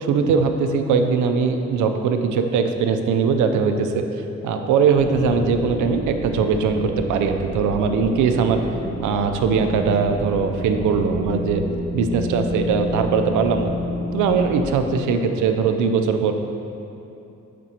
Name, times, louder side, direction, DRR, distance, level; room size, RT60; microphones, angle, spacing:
voice 1, 0.0-4.0 4.4-8.6 9.0-11.6 11.9-13.7 14.1-16.3, right 5 dB, 80° right, 6 dB, 0.5 m, -20 dB
sound 1, 4.9-14.6, equal, 60° right, 1.0 m, -30 dB
7.7 x 5.1 x 2.9 m, 2.8 s
cardioid pair, 90°, 30 cm